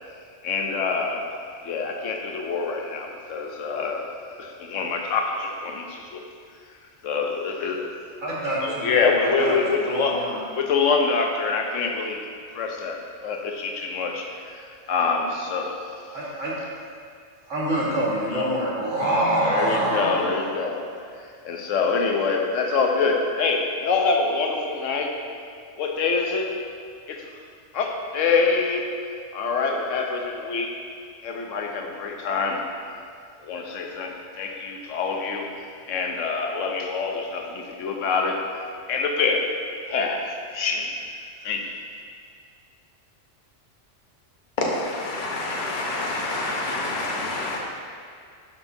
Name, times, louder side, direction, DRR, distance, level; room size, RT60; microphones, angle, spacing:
voice 1, 0.4-1.3 1.6-4.1 4.4-6.2 7.0-8.0 8.6-10.2 10.5-12.2 12.5-16.1 18.3-18.5 19.3-25.2 25.8-26.5 27.1-27.3 27.7-28.9 29.3-30.7 31.2-32.7 33.4-35.5 35.9-38.4 38.9-39.6 39.9-41.0 41.4-41.8, left 4 dB, 85° left, 2 dB, 1.1 m, -26 dB
voice 2, 8.2-9.6 9.9-10.4 16.1-16.5 17.5-20.5, right 1 dB, 85° right, -6 dB, 1.9 m, -25 dB
voice 3, 44.6-47.6, left 2 dB, 45° left, -2 dB, 1.0 m, -27 dB
12.5 x 4.3 x 2.7 m, 2.2 s
omnidirectional pair, 1.3 m